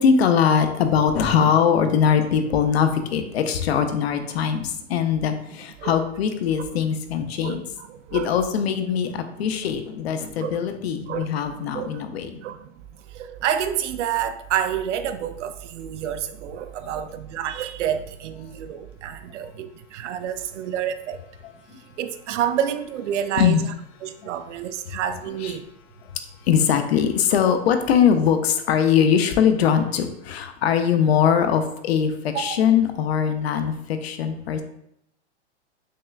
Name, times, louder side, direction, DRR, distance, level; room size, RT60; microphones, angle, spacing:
voice 1, 0.0-7.6 8.1-12.4 16.8-17.0 23.4-23.6 25.4-25.5 26.5-34.6, left 7 dB, 60° left, 8 dB, 0.6 m, -21 dB
voice 2, 7.4-8.4 10.4-10.6 11.1-11.3 11.7-12.0 12.4-12.6 13.2-21.2 22.0-23.7 24.0-25.6 32.3-32.6, right 9 dB, 85° right, 10 dB, 0.5 m, -29 dB
6.4 x 2.2 x 2.4 m, 0.75 s
supercardioid pair, 170°, 35 cm